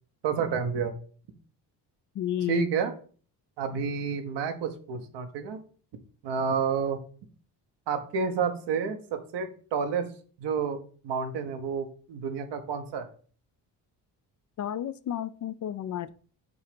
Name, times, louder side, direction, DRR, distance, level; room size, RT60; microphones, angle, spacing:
voice 1, 0.2-0.9 2.5-2.9 3.6-5.6 6.2-7.0 7.9-10.1 10.4-10.8 11.0-13.0, right 6 dB, 70° right, 7 dB, 1.1 m, -29 dB
voice 2, 2.2-2.7 14.6-16.1, left 11 dB, 45° left, 15 dB, 0.4 m, -31 dB
6.7 x 2.8 x 5.1 m, 0.42 s
supercardioid pair, 75°, 43 cm